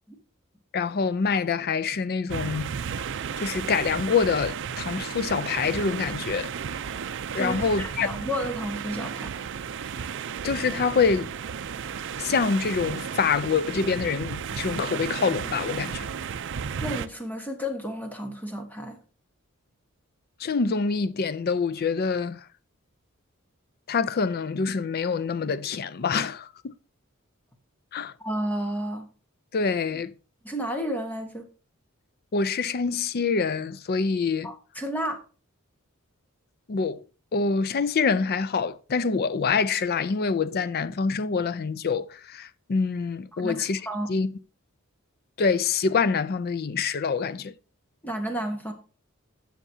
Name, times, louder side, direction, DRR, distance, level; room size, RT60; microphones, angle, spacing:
voice 1, 0.7-2.7 3.4-6.5 7.3-8.1 10.4-11.3 12.2-16.1 20.4-22.5 23.9-26.7 27.9-28.1 29.5-30.1 32.3-34.5 36.7-37.0 37.3-43.8 44.1-44.3 45.4-47.5, left 5 dB, 45° left, 0.5 m, -26 dB
sound 1, 2.3-17.1, right 7 dB, 60° right, 0.5 m, -33 dB
voice 2, 7.4-9.3 16.8-19.0 28.2-29.1 30.4-31.5 34.4-35.2 43.3-44.1 48.0-48.7, equal, 10° left, 1.2 m, -31 dB
17.0 x 5.9 x 2.7 m
head